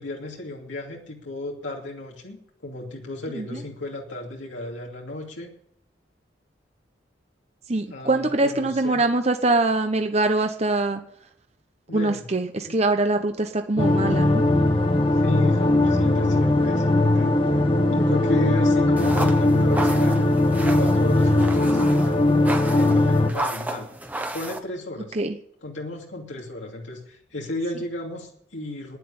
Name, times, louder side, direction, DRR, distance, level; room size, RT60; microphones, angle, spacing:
voice 1, 0.0-5.5 7.9-9.0 11.9-12.2 12.7-12.8 15.2-17.6 17.9-22.2 22.7-23.9 24.3-25.2 25.6-29.0, left 1 dB, 85° left, -1 dB, 2.8 m, -34 dB
voice 2, 7.7-11.0 11.9-14.4 25.1-25.4, right 2 dB, 35° right, 6 dB, 0.9 m, -23 dB
sound 1, 13.8-23.3, left 2 dB, 30° left, 1.4 m, -19 dB
sound 2, 19.0-24.6, right 1 dB, 10° right, 1.1 m, -33 dB
11.5 x 10.0 x 8.7 m, 0.70 s
head